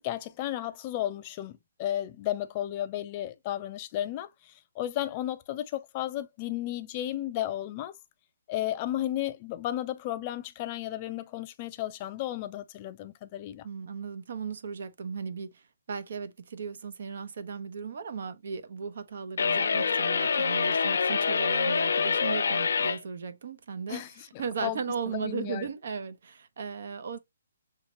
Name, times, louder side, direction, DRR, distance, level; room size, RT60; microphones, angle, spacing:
voice 1, 0.0-7.9 8.5-13.7 23.9-24.8 25.1-25.7, left 13 dB, 25° left, 0.4 m, -34 dB
voice 2, 13.6-15.6 15.9-24.0 24.4-27.2, right 6 dB, 60° right, 0.9 m, -36 dB
sound 1, 19.4-23.0, left 5 dB, 70° left, 0.6 m, -26 dB
6.3 x 2.8 x 3.0 m
hypercardioid pair, 165°, 0 cm